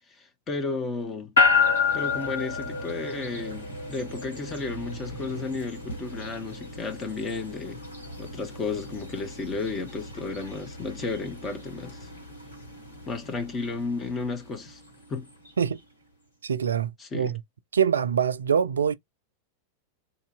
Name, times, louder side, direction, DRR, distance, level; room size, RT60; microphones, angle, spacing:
voice 1, 0.2-1.3 1.9-7.8 8.2-12.1 13.1-14.8 15.1-15.2 17.0-17.3, left 4 dB, 25° left, 1.1 m, -33 dB
sound 1, 1.4-15.6, left 5 dB, 75° left, 1.7 m, -31 dB
voice 2, 16.4-17.4 17.7-19.0, right 7 dB, 70° right, 0.4 m, -24 dB
4.0 x 2.7 x 2.5 m
figure-of-eight pair, 90°, 0 cm